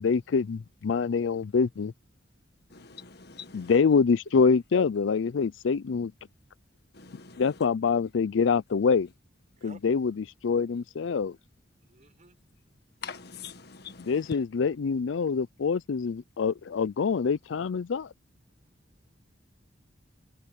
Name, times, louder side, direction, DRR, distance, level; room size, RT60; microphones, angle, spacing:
voice 1, 0.0-1.9 3.5-6.1 7.4-9.1 9.6-11.4 14.1-18.1, left 5 dB, 80° left, 0.4 m, -25 dB
voice 2, 2.7-3.8 6.9-7.6 13.0-14.4, left 5 dB, 60° left, 1.6 m, -44 dB
voice 3, 11.8-12.4 18.5-19.4, right 2 dB, 40° right, 4.3 m, -56 dB
head